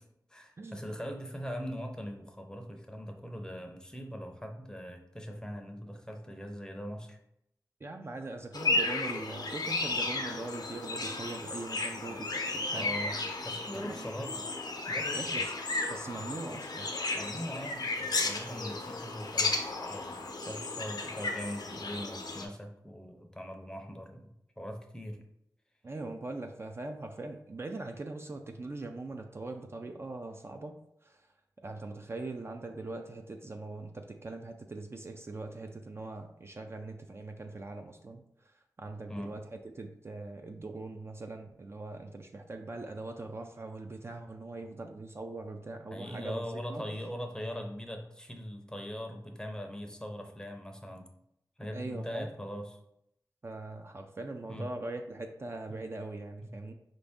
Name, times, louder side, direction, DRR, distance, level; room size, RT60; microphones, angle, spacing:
voice 1, 0.3-7.2 12.7-13.2 13.4-14.4 14.9-15.5 17.1-19.6 19.9-25.2 39.1-39.3 45.9-51.1 51.6-52.8 54.5-54.7 56.4-56.6, equal, 10° left, 4 dB, 0.5 m, -41 dB
voice 2, 7.8-13.0 13.7-14.2 15.2-15.5 15.9-16.9 25.8-30.8 31.0-31.3 31.6-38.2 38.8-46.9 51.6-52.3 53.4-56.7, right 2 dB, 35° right, 5 dB, 0.3 m, -41 dB
sound 1, 8.5-22.5, left 2 dB, 70° left, 0.6 m, -34 dB
4.8 x 2.6 x 3.5 m, 0.79 s
wide cardioid pair, 90°, 7 cm